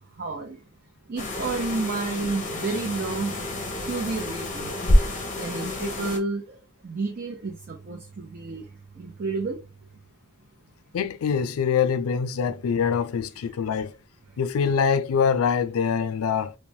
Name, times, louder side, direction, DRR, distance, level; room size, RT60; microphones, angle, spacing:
voice 1, 0.2-0.6 1.1-3.3 3.9-4.7 5.4-6.6 6.8-8.7 9.0-9.6, right 3 dB, 45° right, 0.5 m, -30 dB
sound 1, 1.2-6.2, left 1 dB, 35° left, 0.6 m, -27 dB
voice 2, 10.9-13.9 14.4-16.5, left 6 dB, 75° left, 0.4 m, -24 dB
3.1 x 2.1 x 2.7 m
head